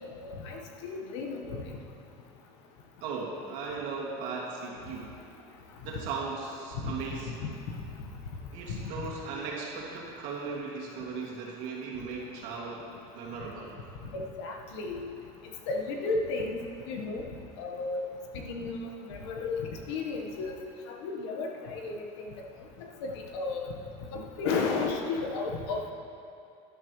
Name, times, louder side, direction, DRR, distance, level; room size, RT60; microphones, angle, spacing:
voice 1, 0.0-1.6 6.8-7.8 8.7-9.1 14.0-15.1 15.7-17.2 17.6-18.1 18.3-20.6 20.9-22.3 22.8-23.6 24.1-25.9, left 3 dB, 85° left, 1 dB, 1.4 m, -34 dB
voice 2, 3.0-5.2 5.8-7.4 8.5-12.9 13.1-13.7, right 4 dB, 65° right, -3 dB, 2.3 m, -37 dB
12.5 x 11.0 x 3.2 m, 2.7 s
cardioid pair, 150°, 14 cm